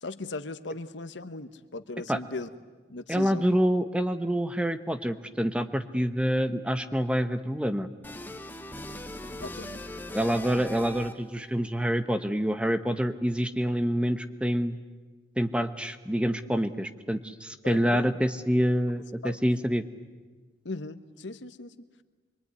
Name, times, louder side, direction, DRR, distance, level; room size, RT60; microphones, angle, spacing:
voice 1, 0.0-2.5 2.9-3.5 9.4-9.9 10.3-10.6 17.6-18.1 19.2-19.4 20.6-21.7, left 2 dB, 80° left, 11 dB, 1.1 m, -38 dB
voice 2, 3.1-7.9 10.1-14.8 15.4-19.8, equal, 5° right, 10 dB, 0.9 m, -27 dB
sound 1, 8.0-11.4, left 1 dB, 10° left, 1.1 m, -40 dB
25.0 x 23.0 x 9.6 m, 1.3 s
head